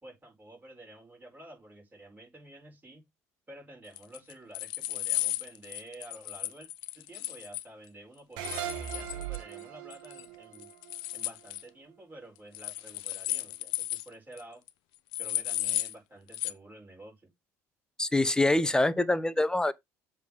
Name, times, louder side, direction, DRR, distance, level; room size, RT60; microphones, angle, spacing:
voice 1, 0.0-3.0 3.5-6.7 6.9-10.7 11.1-14.6 15.2-17.3, right 1 dB, 20° right, 4.8 m, -50 dB
sound 1, 4.0-7.7 8.4-9.6 9.9-10.3 10.5-11.6 12.5-14.1 14.4-14.5 14.7-14.8 15.1-15.9 16.3-16.5, left 17 dB, 65° left, 0.7 m, -34 dB
sound 2, 8.4-11.7, right 11 dB, 65° right, 1.3 m, -39 dB
voice 2, 18.0-19.7, left 2 dB, 10° left, 0.9 m, -25 dB
7.3 x 3.7 x 6.1 m
hypercardioid pair, 70°, 8 cm